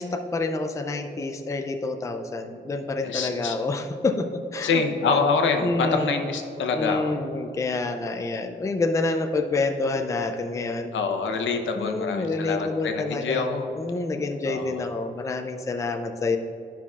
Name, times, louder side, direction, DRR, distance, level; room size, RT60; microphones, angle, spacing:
voice 1, 0.0-4.8 5.6-6.1 6.7-10.9 11.7-13.4 13.8-16.4, left 3 dB, 15° left, 5 dB, 0.3 m, -28 dB
voice 2, 3.0-3.6 4.6-7.2 10.9-13.7 14.5-14.8, left 4 dB, 90° left, 4 dB, 0.8 m, -26 dB
12.0 x 5.7 x 2.4 m, 2.8 s
wide cardioid pair, 155°, 19 cm